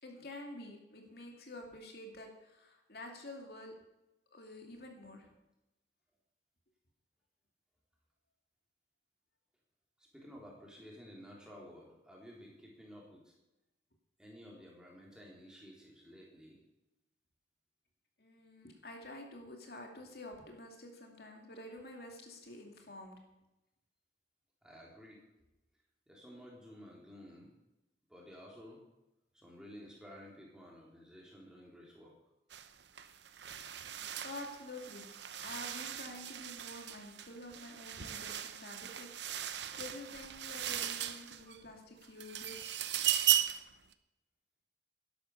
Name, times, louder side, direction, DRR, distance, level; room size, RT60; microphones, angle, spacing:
voice 1, 0.0-3.7 4.3-5.3 18.2-23.2 34.2-39.1 39.4-42.7, left 1 dB, 60° left, 2 dB, 2.5 m, -49 dB
voice 2, 10.0-13.3 14.2-16.6 24.6-25.2 26.1-27.5 28.1-28.8 29.3-32.1, equal, 5° right, -3 dB, 3.7 m, -53 dB
sound 1, 32.5-32.7 33.0-41.6 42.0-43.7, right 10 dB, 85° right, 0.8 m, -37 dB
12.5 x 11.0 x 6.7 m, 0.94 s
head